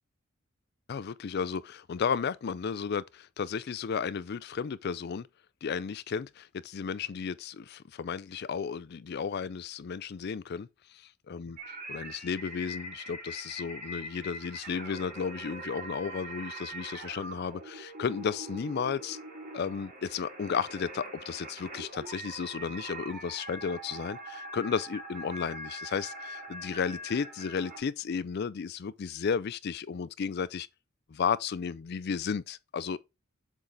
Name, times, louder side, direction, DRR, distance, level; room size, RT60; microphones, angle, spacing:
voice 1, 0.9-5.3 5.6-11.6 11.9-19.2 19.5-30.7 31.1-33.0, left 6 dB, 50° left, 0.4 m, -33 dB
sound 1, 11.6-27.8, right 1 dB, 40° right, 2.1 m, -43 dB
7.3 x 4.0 x 3.6 m
head